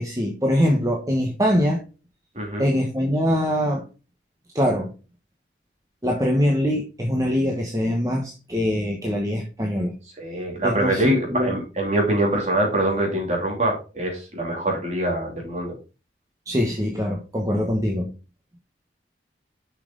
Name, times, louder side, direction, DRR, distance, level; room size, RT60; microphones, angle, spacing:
voice 1, 0.0-1.8 2.6-3.9 4.5-4.9 6.0-9.9 10.6-11.6 16.5-18.1, equal, 20° right, 0 dB, 1.2 m, -23 dB
voice 2, 2.3-2.7 10.2-15.7, right 1 dB, 40° right, 0 dB, 2.9 m, -24 dB
7.2 x 6.0 x 3.9 m, 0.32 s
head